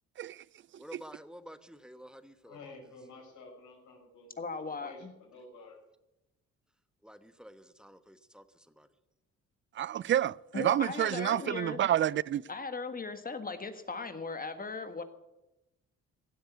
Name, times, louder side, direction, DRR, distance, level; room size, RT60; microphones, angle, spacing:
voice 1, 0.8-2.8 7.0-8.9, equal, 5° right, 1.2 m, -51 dB
voice 2, 2.5-4.4 4.8-5.8, left 3 dB, 75° left, 5.8 m, -51 dB
voice 3, 4.4-5.1 10.5-11.8 12.5-15.0, left 4 dB, 30° left, 1.7 m, -38 dB
voice 4, 9.8-12.4, right 11 dB, 40° right, 0.4 m, -29 dB
16.5 x 7.9 x 9.3 m
cardioid pair, 90°, 30 cm